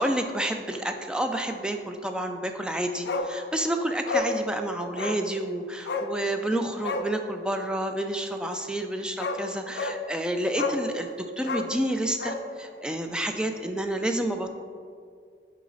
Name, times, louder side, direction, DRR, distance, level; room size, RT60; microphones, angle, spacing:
voice 1, 0.0-14.5, right 1 dB, 5° right, 5 dB, 0.3 m, -29 dB
Bark, 3.1-3.3 3.6-3.7 4.1-4.3 5.0-5.2 5.9-6.1 6.8-7.1 8.7-8.8 9.2-9.4 9.8-10.0 10.6-10.9 11.4-12.4 12.7-12.8, left 3 dB, 70° left, 0.4 m, -30 dB
6.2 x 4.8 x 3.9 m, 2.2 s
head